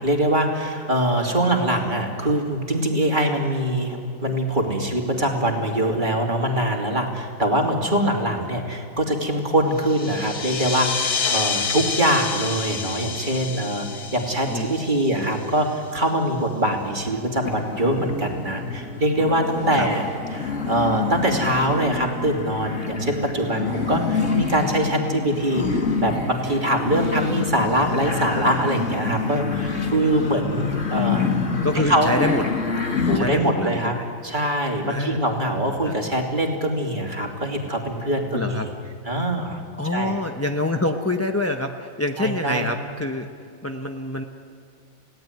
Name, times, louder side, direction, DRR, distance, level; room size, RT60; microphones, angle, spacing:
voice 1, 0.0-13.9 14.1-20.1 20.3-31.3 31.9-32.1 33.1-33.9 34.2-38.6 39.0-39.6 39.9-40.1 42.2-42.7, right 1 dB, 30° right, 2 dB, 2.9 m, -23 dB
sound 1, 9.8-15.9, left 5 dB, 65° left, 2.0 m, -29 dB
voice 2, 14.5-14.8 19.7-19.9 30.9-31.3 31.6-32.5 33.1-34.1 34.9-35.2 35.8-35.9 38.3-38.7 39.8-43.3 43.6-44.2, left 1 dB, 10° left, 4 dB, 0.7 m, -26 dB
sound 2, 17.4-33.2, left 5 dB, 45° left, 2.4 m, -27 dB
30.0 x 17.5 x 9.4 m, 2.3 s
omnidirectional pair, 1.8 m